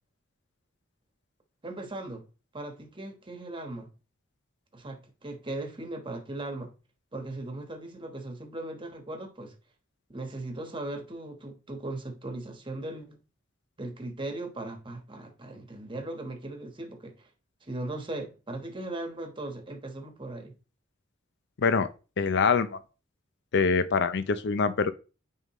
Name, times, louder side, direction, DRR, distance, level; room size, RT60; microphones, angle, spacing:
voice 1, 1.6-2.2 2.5-3.9 4.7-6.7 7.1-9.5 10.1-13.2 13.8-17.3 17.6-20.5, right 2 dB, 25° right, 1.2 m, -38 dB
voice 2, 21.6-21.9 22.2-22.8 23.5-24.9, left 5 dB, 60° left, 0.6 m, -24 dB
9.3 x 3.7 x 3.1 m
head